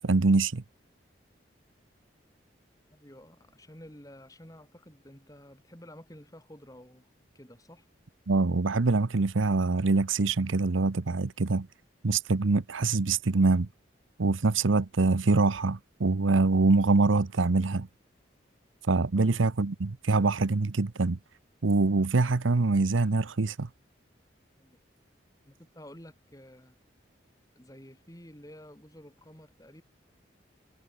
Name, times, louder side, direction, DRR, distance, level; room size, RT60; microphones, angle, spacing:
voice 1, 0.0-0.6 8.3-11.7 12.0-13.7 14.2-17.9 18.9-21.2 21.6-23.7, right 3 dB, 90° right, 0.8 m, -24 dB
voice 2, 2.9-7.1 7.3-7.9 19.1-19.3 24.6-24.8 25.5-26.7 27.5-29.8, equal, 20° left, 4.8 m, -51 dB
head